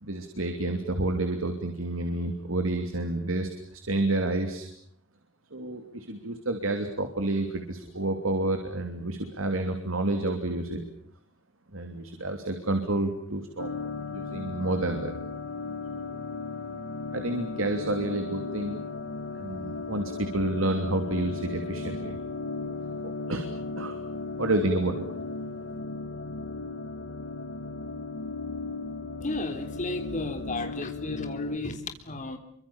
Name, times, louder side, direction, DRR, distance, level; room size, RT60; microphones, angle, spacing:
voice 1, 0.0-3.5 3.8-4.7 5.5-10.8 11.7-13.7 14.1-15.1 17.1-18.8 19.4-22.2 23.3-24.0 24.4-25.0, right 2 dB, 90° right, 6 dB, 3.0 m, -29 dB
sound 1, 13.6-31.6, left 3 dB, 80° left, 2.0 m, -36 dB
voice 2, 29.2-32.4, left 2 dB, 40° left, 6 dB, 3.5 m, -33 dB
28.5 x 24.5 x 7.2 m, 0.66 s
head